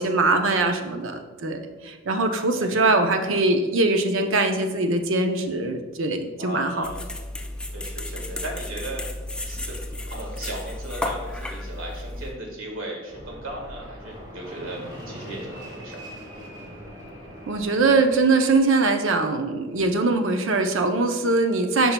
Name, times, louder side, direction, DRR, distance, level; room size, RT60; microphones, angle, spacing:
voice 1, 0.0-6.9 17.5-21.9, right 3 dB, 70° right, 6 dB, 0.6 m, -22 dB
voice 2, 6.4-7.0 7.7-9.1 9.4-16.1, right 1 dB, 90° right, 0 dB, 1.6 m, -36 dB
sound 1, 6.8-12.3, left 1 dB, 5° left, 0.4 m, -33 dB
Fixed-wing aircraft airplane, 13.1-18.7, equal, 20° right, 1.8 m, -41 dB
10.0 x 5.4 x 2.2 m, 1.4 s
head